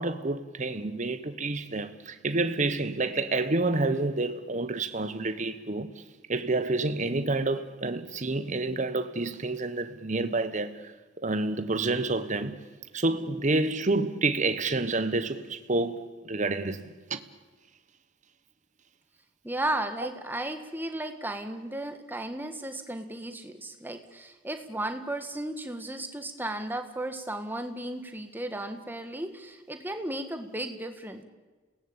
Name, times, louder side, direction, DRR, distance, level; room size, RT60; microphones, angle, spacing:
voice 1, 0.0-10.9 11.2-12.7 12.9-17.2, right 2 dB, 40° right, 1.1 m, -29 dB
voice 2, 19.4-31.2, right 1 dB, 10° right, 1.9 m, -35 dB
29.5 x 18.0 x 8.8 m
head